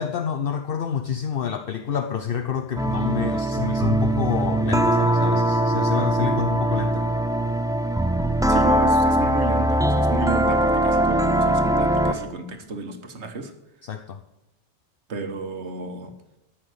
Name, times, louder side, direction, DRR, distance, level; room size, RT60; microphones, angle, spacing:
voice 1, 0.0-7.1 13.8-14.2, left 8 dB, 60° left, 8 dB, 0.8 m, -28 dB
sound 1, 2.8-12.2, right 1 dB, 5° right, 0.4 m, -21 dB
voice 2, 8.5-13.5 15.1-16.1, right 3 dB, 70° right, 6 dB, 1.5 m, -31 dB
14.0 x 6.0 x 8.0 m, 0.94 s
omnidirectional pair, 1.2 m